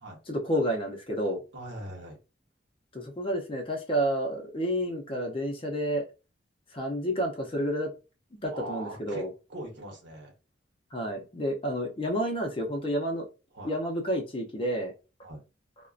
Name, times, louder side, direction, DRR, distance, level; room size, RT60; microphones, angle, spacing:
voice 1, 0.3-1.4 2.9-6.0 6.7-7.9 8.4-9.3 10.9-13.3 13.6-14.9, equal, 25° left, 2 dB, 0.5 m, -30 dB
voice 2, 1.5-2.2 8.5-9.2 9.5-10.3 13.5-13.7 15.2-15.4, right 1 dB, 60° right, -1 dB, 0.9 m, -40 dB
2.5 x 2.1 x 2.4 m, 0.30 s
head